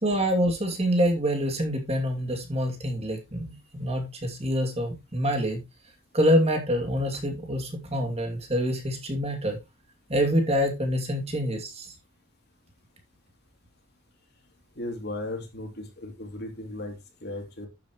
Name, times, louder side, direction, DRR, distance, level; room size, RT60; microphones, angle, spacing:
voice 1, 0.0-5.6 6.1-9.6 10.1-11.9, equal, 30° right, 3 dB, 2.7 m, -26 dB
voice 2, 14.8-17.7, left 1 dB, 50° left, 4 dB, 3.1 m, -36 dB
11.5 x 8.8 x 3.1 m, 0.23 s
head